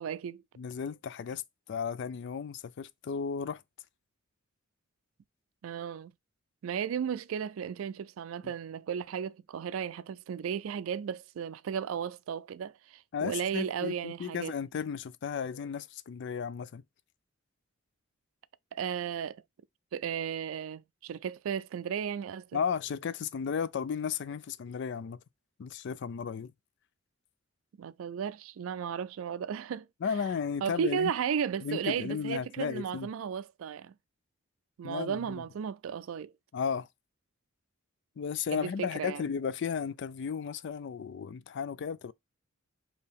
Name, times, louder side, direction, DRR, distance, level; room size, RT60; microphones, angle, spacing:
voice 1, 0.0-0.4 5.6-6.1 6.6-14.5 18.7-19.4 19.9-22.6 27.8-29.9 30.6-33.9 34.8-36.3 38.5-39.2, right 7 dB, 80° right, 0.3 m, -34 dB
voice 2, 0.6-1.4 1.7-3.6 8.4-8.5 13.1-16.8 22.5-25.2 25.6-26.5 30.0-31.1 31.6-33.1 34.8-35.4 36.5-36.9 38.2-42.1, left 6 dB, 60° left, 0.4 m, -34 dB
4.3 x 2.9 x 3.4 m
head